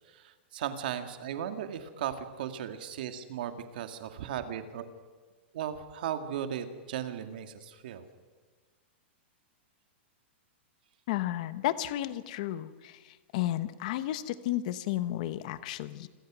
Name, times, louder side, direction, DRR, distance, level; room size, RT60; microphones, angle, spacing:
voice 1, 0.1-4.9 5.5-8.0, right 9 dB, 50° right, 7 dB, 2.1 m, -36 dB
voice 2, 11.1-12.9 13.3-16.1, left 14 dB, 40° left, 13 dB, 1.1 m, -32 dB
28.5 x 22.0 x 6.3 m, 1.4 s
supercardioid pair, 180°, 6 cm